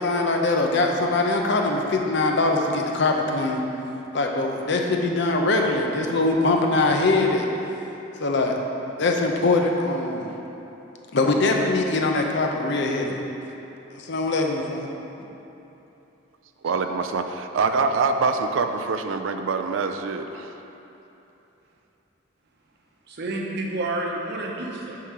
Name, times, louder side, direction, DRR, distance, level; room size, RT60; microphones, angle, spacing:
voice 1, 0.0-3.6 4.1-7.5 8.2-8.5 9.0-10.3 11.1-13.2 13.9-14.9 15.2-15.3, left 2 dB, 65° left, 2 dB, 0.7 m, -22 dB
voice 2, 16.6-20.5, right 4 dB, 80° right, 6 dB, 0.4 m, -25 dB
voice 3, 23.1-25.0, right 2 dB, 60° right, -1 dB, 0.9 m, -30 dB
5.8 x 4.9 x 5.9 m, 3.0 s
head